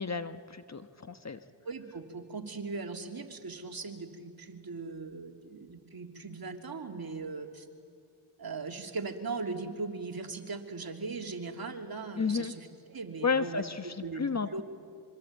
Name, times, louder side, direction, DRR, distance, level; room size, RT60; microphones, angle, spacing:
voice 1, 0.0-1.4 12.2-12.5 13.2-14.6, left 5 dB, 35° left, 10 dB, 1.2 m, -32 dB
voice 2, 1.6-7.7 8.4-14.2 14.5-14.6, right 4 dB, 50° right, 4 dB, 2.9 m, -39 dB
25.5 x 24.0 x 8.6 m, 2.5 s
cardioid pair, 45°, 47 cm